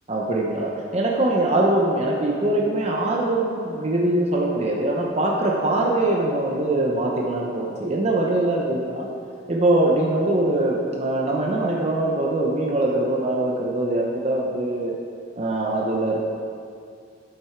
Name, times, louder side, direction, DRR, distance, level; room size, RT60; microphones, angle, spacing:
voice 1, 0.1-9.1 9.5-15.0 15.4-16.2, right 2 dB, 35° right, -2 dB, 0.8 m, -22 dB
8.5 x 7.6 x 4.6 m, 2.3 s
head